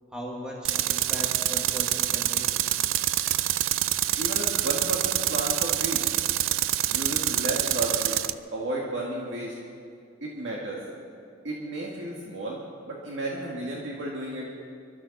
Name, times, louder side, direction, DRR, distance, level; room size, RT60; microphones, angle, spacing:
voice 1, 0.1-2.5, equal, 5° right, -3 dB, 1.5 m, -38 dB
Tools, 0.6-8.3, right 13 dB, 85° right, 0.4 m, -26 dB
voice 2, 4.2-6.0 6.9-8.1 8.5-9.6 10.2-10.8 11.4-12.6 12.9-14.5, right 1 dB, 65° right, -3 dB, 2.0 m, -32 dB
25.0 x 13.5 x 4.2 m, 2.4 s
head